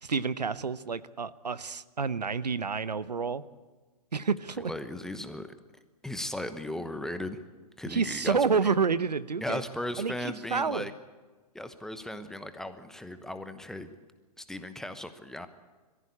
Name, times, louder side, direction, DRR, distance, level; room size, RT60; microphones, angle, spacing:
voice 1, 0.0-3.4 4.1-4.7 7.9-9.6 10.0-10.9, right 5 dB, 90° right, 16 dB, 0.8 m, -29 dB
voice 2, 4.6-5.5 6.0-7.4 7.8-8.4 9.4-10.9 11.5-13.9 14.4-15.5, left 1 dB, ahead, 10 dB, 1.0 m, -37 dB
22.5 x 15.0 x 8.5 m, 1.3 s
hypercardioid pair, 125°, 21 cm